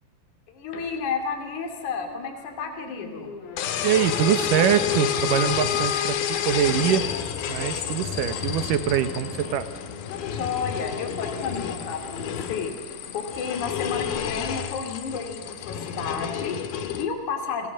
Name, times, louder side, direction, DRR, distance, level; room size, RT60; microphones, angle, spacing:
voice 1, 0.5-3.3 10.1-17.7, left 5 dB, 50° left, 4 dB, 3.9 m, -32 dB
sound 1, 0.7-15.3, left 5 dB, 85° left, 4.1 m, -42 dB
sound 2, 3.6-17.0, left 9 dB, 70° left, 3.0 m, -29 dB
voice 2, 3.8-7.1 7.5-9.7, right 10 dB, 65° right, 11 dB, 2.2 m, -24 dB
30.0 x 20.0 x 7.6 m, 1.4 s
omnidirectional pair, 4.8 m